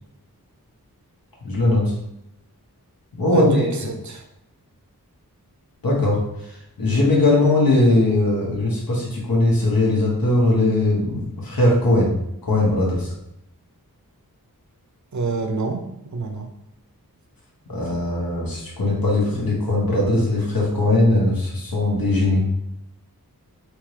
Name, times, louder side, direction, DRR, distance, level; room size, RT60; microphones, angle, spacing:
voice 1, 1.4-2.0 3.2-3.7 5.8-12.2 12.4-13.1 17.6-22.4, left 2 dB, 70° left, -4 dB, 1.4 m, -20 dB
voice 2, 3.3-4.2 15.1-16.5, right 3 dB, 50° right, 4 dB, 0.7 m, -27 dB
3.4 x 3.1 x 3.2 m, 0.82 s
wide cardioid pair, 40°, 37 cm